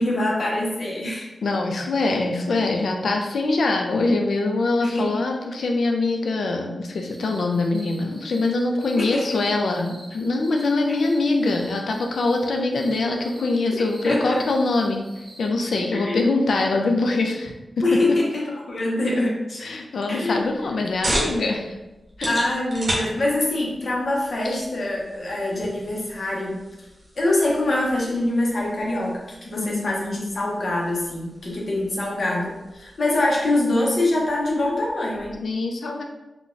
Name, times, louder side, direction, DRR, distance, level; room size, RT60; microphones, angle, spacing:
voice 1, 0.0-1.3 4.8-5.1 9.0-9.4 10.9-11.0 14.0-14.4 16.0-16.2 17.8-19.6 20.1-20.4 22.3-26.7 27.2-35.4, left 1 dB, 45° left, -3 dB, 0.7 m, -24 dB
voice 2, 1.4-15.1 15.4-17.5 18.1-18.2 19.6-21.8 22.2-22.4 24.4-24.6 29.6-30.0 35.4-36.0, left 2 dB, 75° left, 3 dB, 0.4 m, -23 dB
sound 1, 6.9-15.5, right 1 dB, 20° right, 0.9 m, -47 dB
sound 2, 20.4-35.5, right 1 dB, 40° right, 0.8 m, -36 dB
3.9 x 2.2 x 2.5 m, 1.0 s
wide cardioid pair, 175°, 0 cm